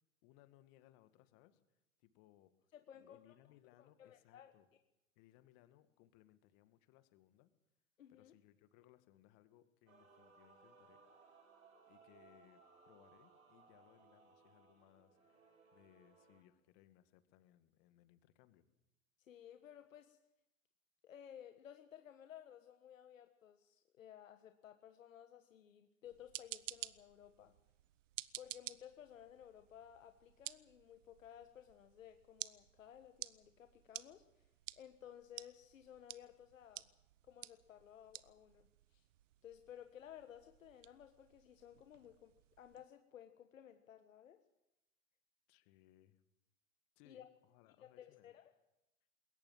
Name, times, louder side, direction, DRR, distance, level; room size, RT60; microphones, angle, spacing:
voice 1, 0.2-1.6 2.0-2.5 2.9-4.7 5.2-7.5 8.1-11.3 11.9-15.4 15.7-18.7 45.5-46.2 47.0-48.3, left 14 dB, 45° left, 11 dB, 1.9 m, -67 dB
voice 2, 2.7-3.3 3.8-4.5 8.0-8.3 19.2-20.2 21.0-27.5 28.4-34.5 34.8-36.9 37.2-39.0 39.4-42.3 42.6-44.4 47.0-47.3 47.8-48.5, left 10 dB, 80° left, 8 dB, 1.4 m, -57 dB
Male singing / Female singing / Musical instrument, 9.9-16.4, right 4 dB, 90° right, 4.6 m, -65 dB
sound 1, 26.0-42.9, right 13 dB, 70° right, 0.9 m, -53 dB
21.5 x 18.0 x 7.5 m, 0.91 s
hypercardioid pair, 110°, 39 cm